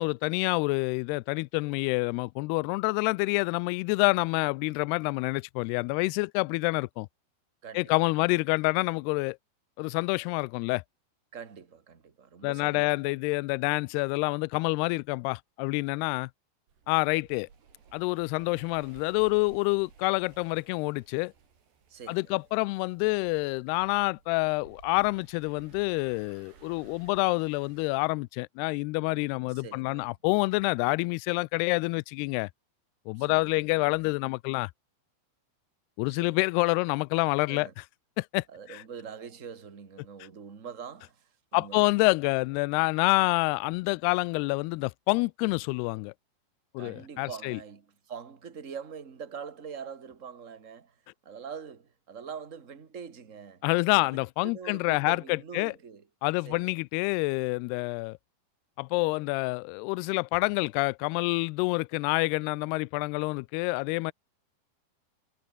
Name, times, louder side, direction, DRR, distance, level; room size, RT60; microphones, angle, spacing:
voice 1, 0.0-7.1 7.8-9.4 9.8-10.8 12.4-16.3 16.9-17.5 17.9-21.3 22.1-32.5 33.1-34.7 36.0-37.7 38.2-38.4 38.7-38.8 41.5-46.1 46.7-47.6 53.6-55.7 56.2-58.2 58.8-64.1, left 26 dB, 85° left, 2.4 m, -27 dB
voice 2, 7.6-8.3 11.3-13.1 21.9-22.4 29.5-30.1 33.1-33.6 36.1-36.4 37.5-37.7 38.5-41.9 46.8-51.0 51.2-53.6 54.0-56.0 56.4-56.8, right 6 dB, 35° right, 1.2 m, -44 dB
sound 1, 16.7-28.0, right 6 dB, 75° right, 6.9 m, -57 dB
omnidirectional pair, 4.9 m